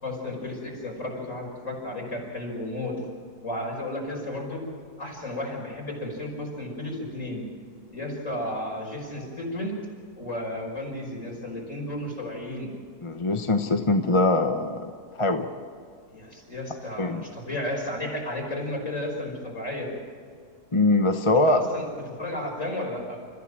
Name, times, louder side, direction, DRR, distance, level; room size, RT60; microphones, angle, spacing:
voice 1, 0.0-3.0 3.4-4.6 5.0-7.5 7.9-9.7 10.2-12.7 16.1-19.9 21.5-23.2, left 1 dB, 50° left, -1 dB, 6.0 m, -33 dB
voice 2, 13.0-14.9 15.2-15.5 17.0-17.2 20.7-21.6, left 2 dB, 25° left, 5 dB, 0.9 m, -22 dB
30.0 x 15.0 x 7.6 m, 2.2 s
omnidirectional pair, 1.7 m